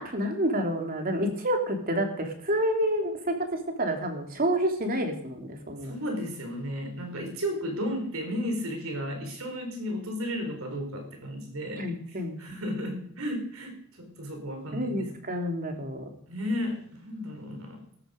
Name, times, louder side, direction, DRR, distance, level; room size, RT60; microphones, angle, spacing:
voice 1, 0.0-3.3 3.8-6.0 11.8-12.4 14.7-16.1, equal, 40° right, 3 dB, 2.9 m, -28 dB
voice 2, 5.8-15.1 16.3-17.8, equal, 70° right, 4 dB, 4.3 m, -34 dB
16.5 x 13.0 x 5.1 m, 0.63 s
head